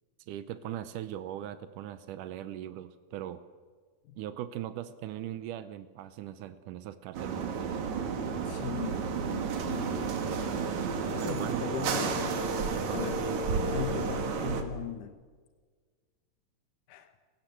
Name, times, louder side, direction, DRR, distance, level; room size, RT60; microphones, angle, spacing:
voice 1, 0.3-3.4 4.2-7.8 11.2-11.7 12.7-13.9, right 12 dB, 85° right, 12 dB, 2.3 m, -39 dB
sound 1, 7.1-14.6, right 5 dB, 70° right, 3.0 m, -31 dB
voice 2, 8.5-10.5 11.1-12.5 12.9-13.3 13.7-15.1 16.9-17.2, left 8 dB, 85° left, 9 dB, 2.6 m, -39 dB
29.5 x 16.5 x 7.7 m, 1.5 s
omnidirectional pair, 3.6 m